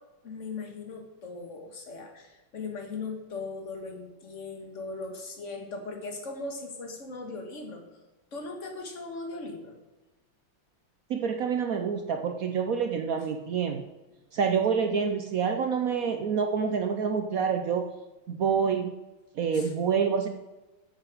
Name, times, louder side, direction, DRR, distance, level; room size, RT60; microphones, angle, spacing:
voice 1, 0.2-7.8 8.3-9.8 19.5-19.7, left 3 dB, 40° left, 3 dB, 1.7 m, -39 dB
voice 2, 11.1-13.8 14.3-17.8 18.3-18.9 19.4-20.3, right 6 dB, 75° right, 5 dB, 0.8 m, -27 dB
9.6 x 8.0 x 4.9 m, 1.1 s
omnidirectional pair, 2.3 m